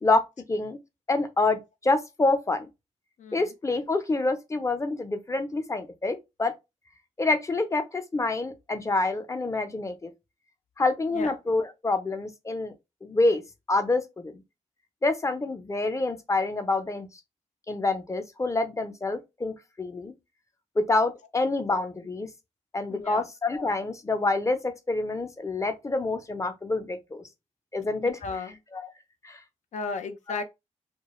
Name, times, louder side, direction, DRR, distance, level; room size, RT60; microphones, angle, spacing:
voice 1, 0.5-0.8 1.1-2.7 3.3-6.5 7.2-10.1 10.8-12.7 13.0-13.4 13.7-14.4 15.0-17.1 17.7-20.1 20.8-22.3 22.7-27.2 27.7-28.2 28.7-28.9 29.2-29.4, left 2 dB, 25° left, 0.5 m, -27 dB
voice 2, 22.9-23.2 28.0-28.5 29.7-30.4, left 4 dB, 75° left, 0.4 m, -34 dB
2.4 x 2.2 x 2.9 m
cardioid pair, 85°, 12 cm